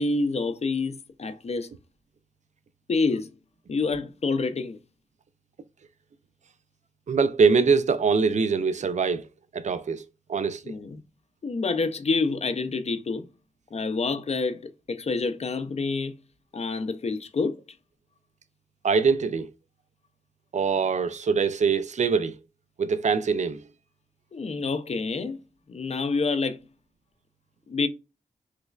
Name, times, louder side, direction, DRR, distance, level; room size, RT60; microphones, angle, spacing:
voice 1, 0.0-1.7 2.9-3.3 3.7-4.8 10.7-11.0 11.4-13.3 13.7-16.1 16.5-17.6 24.3-25.4 25.7-26.6 27.7-27.9, left 3 dB, 50° left, 0.5 m, -27 dB
voice 2, 7.1-9.2 9.5-10.0 10.3-10.6 18.8-19.5 20.5-22.3 22.8-23.6, right 5 dB, 55° right, 0.4 m, -23 dB
3.2 x 3.0 x 2.3 m
wide cardioid pair, 75°, 14 cm